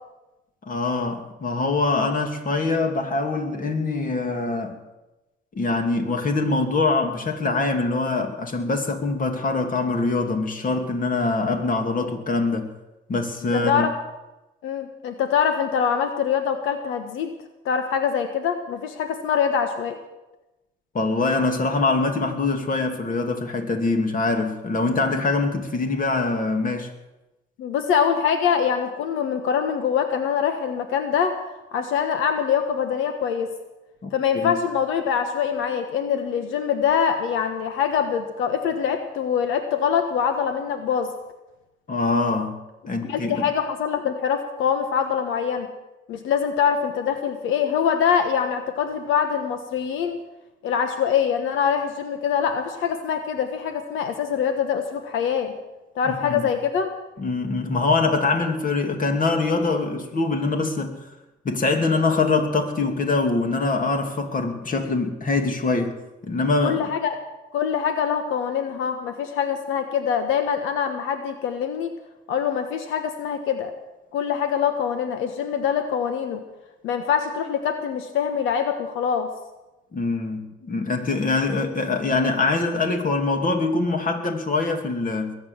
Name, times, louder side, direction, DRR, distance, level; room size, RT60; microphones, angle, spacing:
voice 1, 0.7-4.8 5.5-12.7 13.1-13.9 20.9-26.9 34.0-34.1 34.3-34.6 41.9-43.4 56.1-56.4 57.2-60.9 61.4-66.0 66.2-66.8 79.9-85.3, left 3 dB, 45° left, 4 dB, 2.7 m, -24 dB
voice 2, 13.5-13.9 14.6-17.3 17.6-20.0 27.6-31.4 31.7-33.5 34.1-41.1 43.0-45.7 46.1-50.2 50.6-55.5 55.9-56.9 66.6-67.1 67.5-71.9 72.3-73.7 74.1-76.4 76.8-79.3, left 7 dB, 90° left, 7 dB, 1.2 m, -24 dB
21.5 x 8.7 x 7.3 m, 1.0 s
cardioid pair, 90°, 20 cm